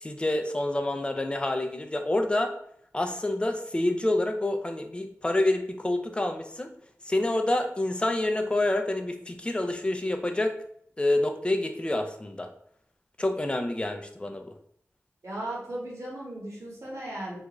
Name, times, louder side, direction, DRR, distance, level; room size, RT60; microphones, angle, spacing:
voice 1, 0.0-2.5 2.9-6.7 7.0-10.5 11.0-12.5 13.2-14.5, left 1 dB, 20° left, 5 dB, 0.4 m, -27 dB
voice 2, 15.2-17.4, right 1 dB, 70° right, -4 dB, 1.0 m, -36 dB
2.5 x 2.2 x 3.0 m, 0.65 s
wide cardioid pair, 50°, 5 cm